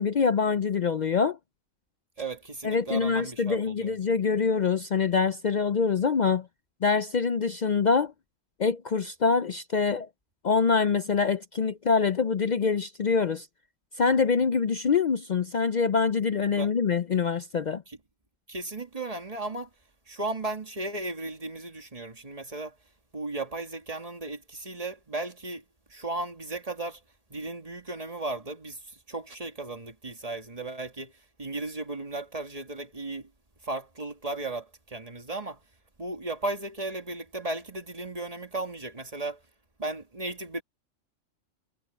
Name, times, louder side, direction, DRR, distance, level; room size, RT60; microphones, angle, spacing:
voice 1, 0.0-1.4 2.6-6.5 6.8-8.1 8.6-10.1 10.4-13.5 14.0-17.8, left 5 dB, 55° left, 0.5 m, -25 dB
voice 2, 2.2-4.0 16.6-16.7 17.9-18.0 18.5-19.7 20.1-22.7 23.1-25.6 25.9-27.0 27.3-31.1 31.4-33.3 33.6-35.6 36.0-39.4 39.8-40.6, right 2 dB, 30° right, 2.1 m, -35 dB
omnidirectional pair, 1.3 m